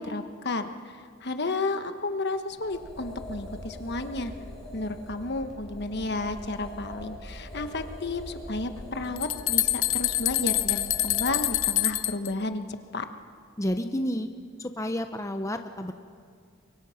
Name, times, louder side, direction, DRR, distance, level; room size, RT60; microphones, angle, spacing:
voice 1, 0.0-4.3 4.7-12.7 12.9-13.0, left 2 dB, 55° left, 8 dB, 1.2 m, -32 dB
sound 1, 2.5-11.6, left 1 dB, ahead, 6.4 m, -42 dB
sound 2, 8.8-8.9 9.2-12.3, left 16 dB, 85° left, 0.8 m, -26 dB
voice 2, 13.6-14.3 14.6-15.9, equal, 15° left, 6 dB, 0.9 m, -30 dB
30.0 x 24.0 x 5.8 m, 2.1 s
head